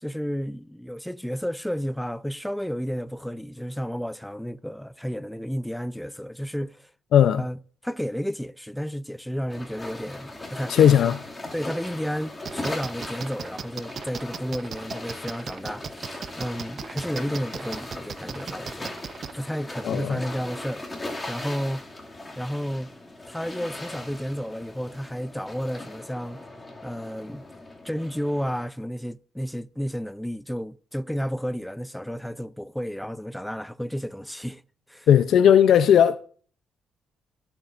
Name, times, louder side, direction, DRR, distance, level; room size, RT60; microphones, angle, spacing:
voice 1, 0.0-6.9 7.4-7.6 7.8-11.0 11.5-19.0 19.3-21.9 22.4-22.9 23.3-26.4 26.8-27.4 27.8-34.6 34.9-35.1, equal, 5° left, 0.5 m, -32 dB
voice 2, 7.1-7.4 10.7-11.2 19.8-20.2 35.1-36.2, left 9 dB, 70° left, 0.6 m, -17 dB
sound 1, 9.5-28.6, left 2 dB, 20° left, 2.4 m, -39 dB
sound 2, 12.5-19.3, right 6 dB, 50° right, 0.6 m, -36 dB
21.5 x 7.3 x 2.6 m
cardioid pair, 90°, 0 cm